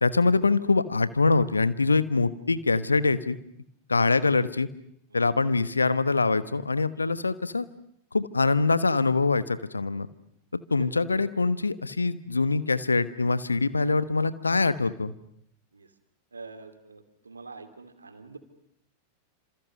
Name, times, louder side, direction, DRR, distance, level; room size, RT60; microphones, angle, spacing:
voice 1, 0.0-3.4 3.9-4.7 5.1-7.7 8.1-10.1 10.7-15.1, left 3 dB, 80° left, 15 dB, 1.2 m, -24 dB
voice 2, 16.3-18.4, right 4 dB, 75° right, 9 dB, 2.9 m, -46 dB
29.5 x 27.0 x 6.7 m, 0.71 s
figure-of-eight pair, 90°, 0 cm